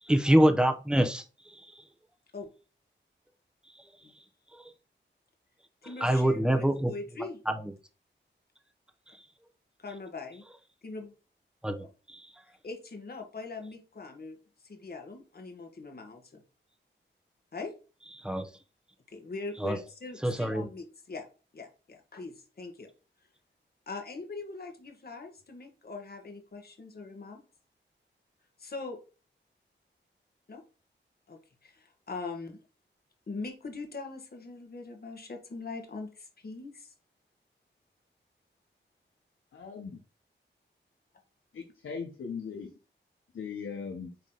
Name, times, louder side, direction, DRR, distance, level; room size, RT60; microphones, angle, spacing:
voice 1, 0.0-1.8 3.7-3.9 4.5-4.7 5.8-6.9 7.2-7.7 9.1-9.3 11.6-12.3 18.2-18.5 19.6-19.8 20.2-20.7, right 1 dB, 5° right, 0.9 m, -27 dB
voice 2, 5.8-7.4 9.8-10.4 10.8-11.1 12.6-14.4 14.6-16.4 17.5-17.7 19.1-21.3 21.5-22.9 23.9-27.4 28.6-29.0 30.5-30.6 31.3-32.6 33.3-36.9, left 3 dB, 50° left, 1.6 m, -41 dB
voice 3, 39.5-40.0 41.5-42.7 43.3-44.1, left 5 dB, 90° left, 1.1 m, -39 dB
8.6 x 3.1 x 4.0 m
wide cardioid pair, 90°, 20 cm